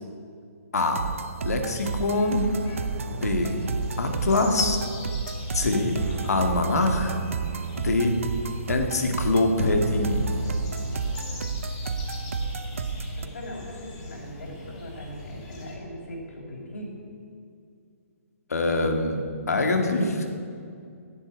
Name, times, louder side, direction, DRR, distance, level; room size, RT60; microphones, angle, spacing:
voice 1, 0.7-1.1 1.4-2.5 3.1-3.6 4.0-4.8 5.5-7.2 7.8-8.2 8.7-10.3 18.5-20.1, left 2 dB, 90° left, 4 dB, 2.3 m, -24 dB
sound 1, 0.7-13.3, right 4 dB, 60° right, 0.7 m, -31 dB
sound 2, 1.7-15.8, left 2 dB, 20° left, 2.1 m, -41 dB
voice 2, 13.2-16.9 20.0-20.1, equal, 70° left, -5 dB, 4.5 m, -39 dB
11.0 x 11.0 x 9.4 m, 2.3 s
hypercardioid pair, 180°, 8 cm